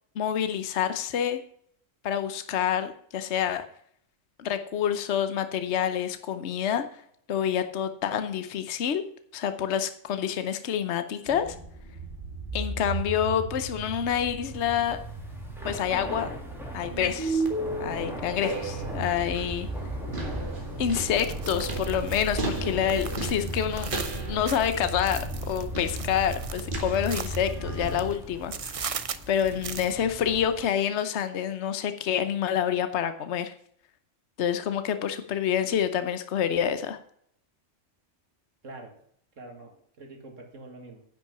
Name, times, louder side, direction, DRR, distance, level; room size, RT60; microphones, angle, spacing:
voice 1, 0.2-1.4 2.0-3.6 4.4-6.8 7.3-9.0 9.3-11.6 12.5-15.0 15.6-16.3 16.7-17.4 17.8-19.7 20.8-23.9 24.3-25.2 25.5-28.9 29.3-33.5 34.4-37.0, left 9 dB, 60° left, 10 dB, 1.1 m, -27 dB
sound 1, 11.3-28.1, right 2 dB, 40° right, 2.3 m, -34 dB
Thunder / Rain, 14.4-30.8, equal, ahead, 2.4 m, -42 dB
sound 2, 21.1-28.2 28.5-29.9, right 7 dB, 55° right, 0.3 m, -39 dB
voice 2, 38.6-39.0 39.4-41.0, right 2 dB, 70° right, 3 dB, 2.4 m, -45 dB
10.5 x 6.0 x 6.7 m, 0.65 s
omnidirectional pair, 1.3 m